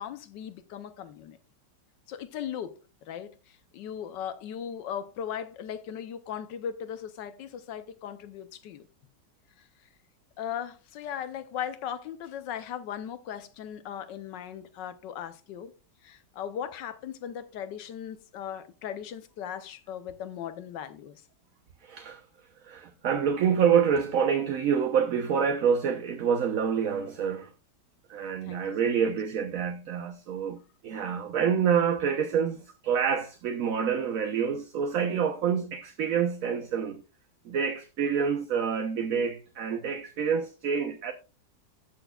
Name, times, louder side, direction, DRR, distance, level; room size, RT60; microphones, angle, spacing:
voice 1, 0.0-1.4 2.1-8.9 9.6-9.7 10.4-15.7 16.0-21.2 28.4-28.6, left 9 dB, 75° left, 1.4 m, -38 dB
voice 2, 21.8-22.2 22.6-27.5 28.1-37.0 37.4-41.1, right 7 dB, 60° right, 1.0 m, -27 dB
16.0 x 6.1 x 2.3 m
omnidirectional pair, 1.9 m